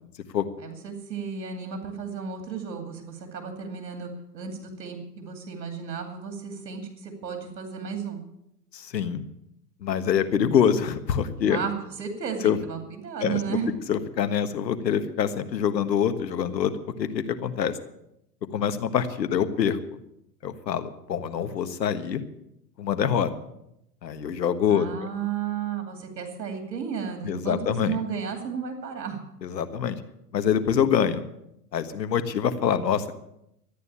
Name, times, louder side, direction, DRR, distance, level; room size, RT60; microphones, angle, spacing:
voice 1, 0.6-8.2 11.4-11.7 12.0-13.7 24.7-29.2, right 7 dB, 75° right, 5 dB, 2.7 m, -33 dB
voice 2, 8.7-9.2 9.8-11.6 12.4-12.6 13.2-13.6 13.9-16.7 17.0-17.7 18.5-19.8 20.4-22.2 22.8-23.3 24.0-24.9 27.2-28.0 29.4-30.0 30.3-31.2 31.7-33.2, left 8 dB, 80° left, 10 dB, 1.6 m, -25 dB
13.5 x 9.5 x 8.5 m, 0.80 s
hypercardioid pair, 115°, 49 cm